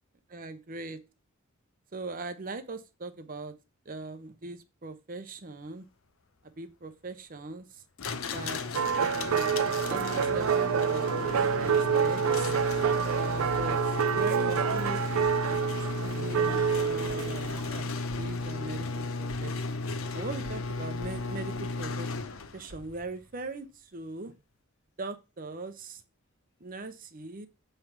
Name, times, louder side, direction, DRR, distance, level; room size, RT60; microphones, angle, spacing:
voice 1, 0.3-1.0 1.9-3.5 3.8-5.8 6.6-7.8 8.3-8.6 9.0-9.5 9.9-11.3 11.6-12.5 13.2-17.6 18.1-19.8 20.1-22.1 22.5-24.3 25.0-26.0 26.6-27.5, right 3 dB, 40° right, 10 dB, 0.7 m, -40 dB
sound 1, 8.0-22.7, left 3 dB, 80° left, 0.7 m, -34 dB
sound 2, 8.7-17.9, right 7 dB, 80° right, 0.4 m, -28 dB
sound 3, 19.3-23.6, right 1 dB, 60° left, 1.4 m, -51 dB
7.5 x 3.3 x 5.8 m, 0.29 s
head